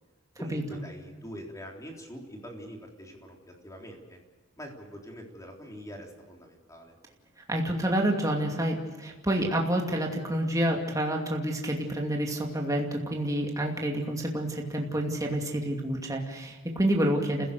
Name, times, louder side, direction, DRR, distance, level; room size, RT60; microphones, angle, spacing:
voice 1, 0.4-3.4 3.6-4.2 4.6-6.9, equal, 15° left, 1 dB, 3.6 m, -44 dB
voice 2, 7.5-17.5, right 1 dB, 15° right, 1 dB, 2.5 m, -28 dB
29.0 x 16.5 x 6.8 m, 1.4 s
head